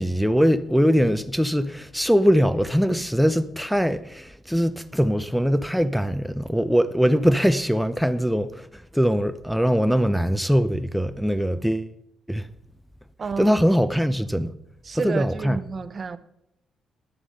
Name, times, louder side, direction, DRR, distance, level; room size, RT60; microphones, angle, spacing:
voice 1, 0.0-11.9 12.3-12.5 13.4-14.5 14.9-15.6, equal, ahead, 0.6 m, -22 dB
voice 2, 13.2-13.6 14.9-16.2, right 5 dB, 40° right, 0.7 m, -30 dB
11.0 x 7.0 x 5.4 m
cardioid pair, 90°, 0 cm